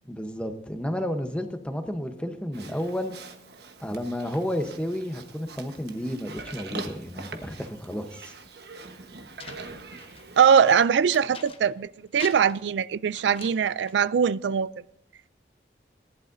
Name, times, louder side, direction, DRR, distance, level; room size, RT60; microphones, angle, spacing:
voice 1, 0.0-3.1 3.8-8.3, equal, 5° left, 0.9 m, -31 dB
Livestock farm animals working animals, 2.5-10.4, right 3 dB, 65° right, 1.3 m, -43 dB
sound 1, 9.4-11.9 12.1-14.0, left 5 dB, 30° left, 1.1 m, -45 dB
voice 2, 10.4-14.7, right 7 dB, 85° right, 0.3 m, -21 dB
18.5 x 11.5 x 2.7 m
head